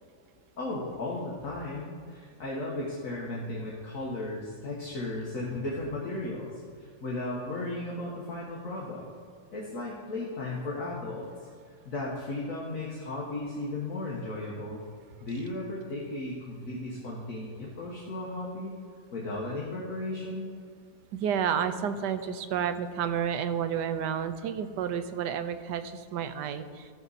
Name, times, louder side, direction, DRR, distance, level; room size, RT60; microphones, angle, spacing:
voice 1, 0.6-9.1 9.5-11.5 11.8-14.8 15.2-18.8 19.1-20.5, left 2 dB, 55° left, -5 dB, 1.7 m, -35 dB
voice 2, 21.1-26.9, right 8 dB, 85° right, 10 dB, 1.2 m, -30 dB
14.0 x 6.3 x 4.1 m, 2.2 s
omnidirectional pair, 1.8 m